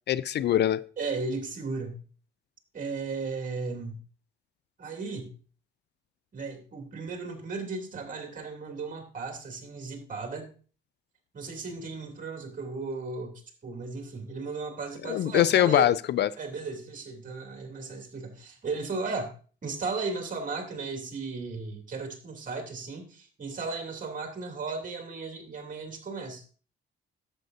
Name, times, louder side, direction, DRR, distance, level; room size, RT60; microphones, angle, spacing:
voice 1, 0.1-0.8 15.0-16.3, left 11 dB, 60° left, 0.4 m, -23 dB
voice 2, 1.0-2.0 2.7-4.0 4.8-5.4 6.3-10.5 11.3-15.9 16.4-19.3 19.6-26.4, right 4 dB, 40° right, 2.9 m, -35 dB
11.0 x 7.9 x 2.7 m
cardioid pair, 90°, 20 cm